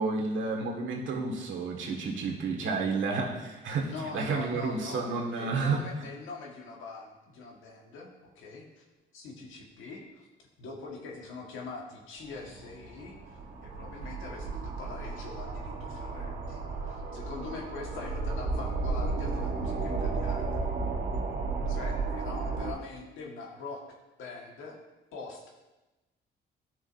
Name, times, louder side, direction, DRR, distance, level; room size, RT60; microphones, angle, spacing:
voice 1, 0.0-5.8, right 4 dB, 75° right, 0 dB, 1.7 m, -31 dB
voice 2, 3.8-8.8 9.1-20.7 21.7-24.8 25.1-25.4, left 4 dB, 85° left, -1 dB, 1.6 m, -43 dB
sound 1, 12.2-22.7, right 3 dB, 50° right, 1.4 m, -33 dB
11.5 x 6.2 x 2.6 m, 1.1 s
cardioid pair, 90°, 20 cm